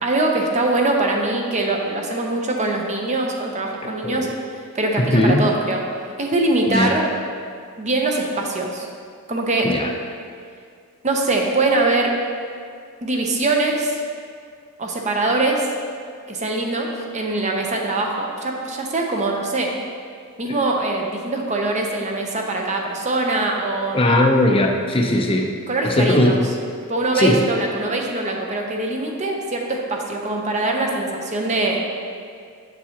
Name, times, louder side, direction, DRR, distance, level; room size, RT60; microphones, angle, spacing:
voice 1, 0.0-4.3 4.7-5.8 6.2-7.1 7.8-8.9 9.3-9.7 11.0-12.1 13.0-14.0 14.8-15.7 16.3-16.9 17.1-19.7 20.4-24.0 25.7-26.4 26.9-31.8, right 2 dB, 35° right, 1 dB, 0.7 m, -22 dB
voice 2, 5.0-5.5 6.7-6.9 9.6-9.9 23.9-25.5 25.8-26.5 27.1-27.4, left 1 dB, 25° left, 2 dB, 0.6 m, -18 dB
7.2 x 6.8 x 2.9 m, 2.2 s
head